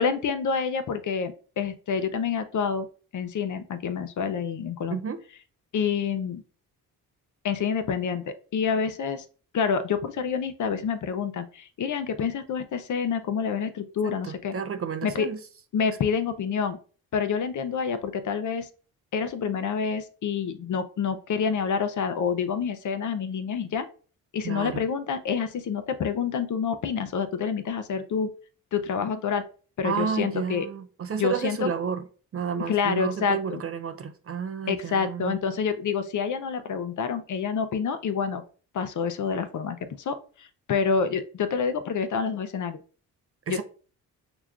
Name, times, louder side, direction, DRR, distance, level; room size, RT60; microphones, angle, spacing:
voice 1, 0.0-2.9 3.1-5.0 5.7-6.4 7.4-9.3 9.5-14.5 15.0-15.3 15.7-16.8 17.1-18.7 19.1-23.9 24.3-28.3 28.7-29.4 29.8-30.7 31.2-31.7 32.7-33.6 34.7-38.4 38.7-42.8 43.5-43.6, left 6 dB, 50° left, 0.6 m, -28 dB
voice 2, 4.9-5.2 14.0-15.4 24.4-24.8 29.8-32.1 32.3-35.4 43.5-43.6, right 7 dB, 35° right, 0.5 m, -31 dB
5.8 x 2.2 x 2.4 m
supercardioid pair, 60°, 39 cm